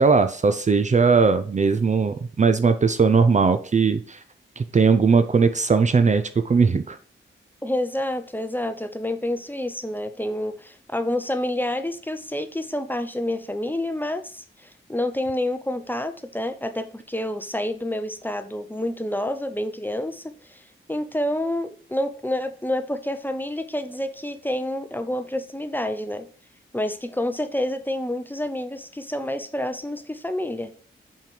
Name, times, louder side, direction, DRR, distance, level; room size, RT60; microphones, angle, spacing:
voice 1, 0.0-4.2 4.6-7.0, right 5 dB, 35° right, 11 dB, 0.5 m, -19 dB
voice 2, 7.6-20.6 20.9-26.3 26.7-30.7, left 1 dB, 10° left, 9 dB, 0.7 m, -28 dB
5.7 x 4.6 x 4.8 m, 0.43 s
cardioid pair, 60°, 21 cm